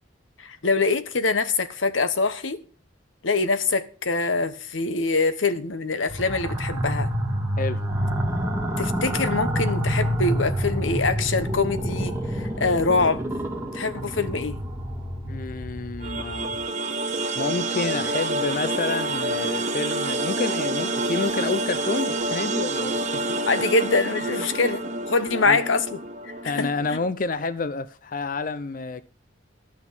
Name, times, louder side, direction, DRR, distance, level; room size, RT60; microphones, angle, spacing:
voice 1, 0.4-2.6 3.2-7.1 8.8-13.3 13.7-14.6 23.5-25.8 26.4-26.7, left 3 dB, 90° left, 1.1 m, -24 dB
sound 1, 6.1-16.6, equal, 10° right, 1.9 m, -28 dB
voice 2, 15.3-16.6 17.4-23.0 25.3-25.6 26.4-29.0, left 3 dB, 45° left, 0.5 m, -29 dB
sound 2, 16.0-27.1, right 2 dB, 40° right, 1.6 m, -28 dB
12.5 x 6.0 x 7.3 m
head